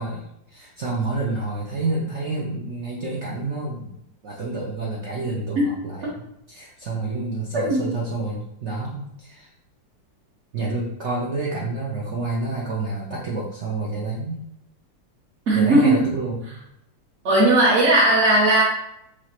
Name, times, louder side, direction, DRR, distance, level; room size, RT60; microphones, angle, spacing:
voice 1, 0.0-3.9 4.2-9.5 10.5-14.4 15.5-16.6, right 3 dB, 80° right, -4 dB, 0.6 m, -29 dB
voice 2, 15.5-16.0 17.2-18.6, right 2 dB, 50° right, -7 dB, 0.9 m, -17 dB
5.0 x 2.8 x 2.9 m, 0.80 s
omnidirectional pair, 2.1 m